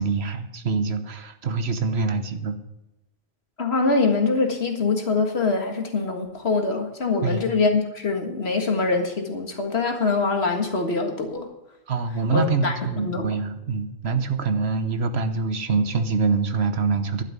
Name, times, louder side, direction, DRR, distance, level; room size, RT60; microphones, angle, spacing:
voice 1, 0.0-2.6 7.2-7.5 11.9-17.2, right 4 dB, 70° right, 9 dB, 1.3 m, -25 dB
voice 2, 3.6-11.5 12.3-13.3, left 3 dB, 70° left, 4 dB, 2.1 m, -24 dB
11.5 x 6.6 x 9.5 m, 0.94 s
omnidirectional pair, 1.1 m